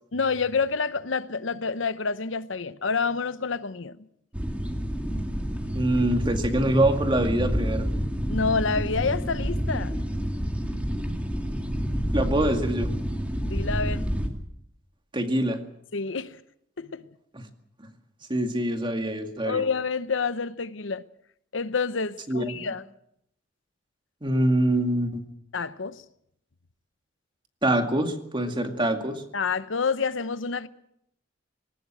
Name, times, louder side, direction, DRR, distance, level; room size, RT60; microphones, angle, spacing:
voice 1, 0.1-4.0 8.3-10.0 13.4-14.1 15.9-16.4 16.8-17.1 19.4-21.0 21.5-22.8 25.5-26.0 29.3-30.7, left 5 dB, 75° left, 0.9 m, -28 dB
sound 1, 4.3-14.3, equal, 5° right, 2.3 m, -28 dB
voice 2, 5.7-7.9 12.1-12.9 15.1-15.6 17.3-17.5 18.3-19.6 22.3-22.7 24.2-25.3 27.6-29.2, right 1 dB, 25° right, 2.2 m, -25 dB
20.5 x 18.5 x 7.6 m
head